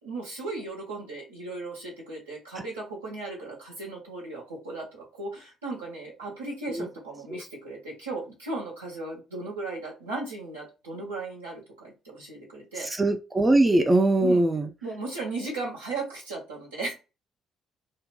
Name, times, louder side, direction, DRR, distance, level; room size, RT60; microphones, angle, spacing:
voice 1, 0.0-12.9 14.2-14.4 14.8-16.9, right 3 dB, 80° right, -3 dB, 1.2 m, -36 dB
voice 2, 12.9-14.7, right 2 dB, 20° right, 6 dB, 0.4 m, -21 dB
2.6 x 2.2 x 3.6 m, 0.29 s
figure-of-eight pair, 45°, 0 cm